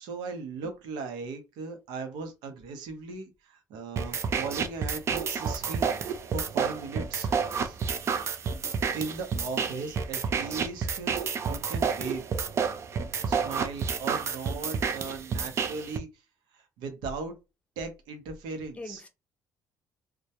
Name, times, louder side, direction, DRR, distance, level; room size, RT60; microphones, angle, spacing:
voice 1, 0.0-5.9 6.3-7.3 7.6-7.8 8.9-11.2 11.4-12.2 13.2-16.1 16.5-17.4 17.8-19.0, right 4 dB, 85° right, 0.7 m, -38 dB
sound 1, 4.0-16.0, right 6 dB, 40° right, 0.3 m, -30 dB
voice 2, 7.2-7.7 18.8-19.1, left 2 dB, 15° left, 0.5 m, -44 dB
2.2 x 2.1 x 2.8 m
cardioid pair, 120°, 8 cm